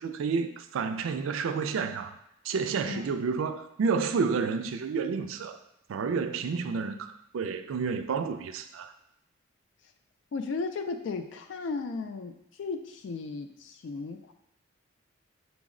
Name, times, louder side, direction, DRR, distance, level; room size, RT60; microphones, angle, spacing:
voice 1, 0.0-2.2 2.4-5.6 5.9-8.9, right 5 dB, 85° right, 9 dB, 0.4 m, -30 dB
voice 2, 2.9-3.2 10.3-12.3 12.6-14.3, left 4 dB, 65° left, 6 dB, 0.3 m, -35 dB
5.9 x 2.0 x 3.6 m, 0.80 s
head